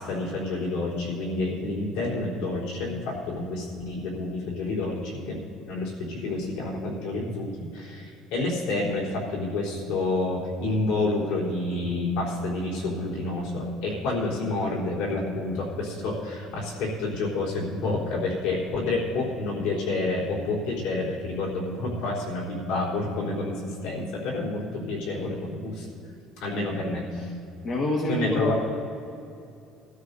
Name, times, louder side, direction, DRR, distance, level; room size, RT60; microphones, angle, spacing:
voice 1, 0.0-5.4 5.7-25.9 26.4-27.4 28.1-28.6, left 2 dB, 90° left, -3 dB, 3.8 m, -29 dB
voice 2, 27.6-28.6, left 1 dB, 40° left, -1 dB, 1.6 m, -26 dB
21.0 x 13.0 x 2.7 m, 2.6 s
cardioid pair, 145°, 0 cm